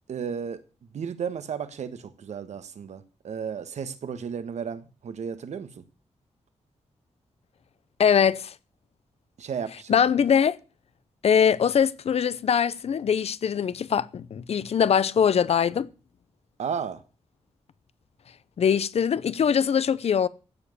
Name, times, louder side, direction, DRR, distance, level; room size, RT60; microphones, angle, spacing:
voice 1, 0.1-0.6 0.9-5.8 9.4-10.0 16.6-17.0, right 7 dB, 75° right, 1.5 m, -33 dB
voice 2, 8.0-8.5 9.9-10.6 11.2-15.9 18.6-20.3, left 7 dB, 60° left, 0.7 m, -22 dB
15.5 x 7.4 x 6.7 m
wide cardioid pair, 175°, 12 cm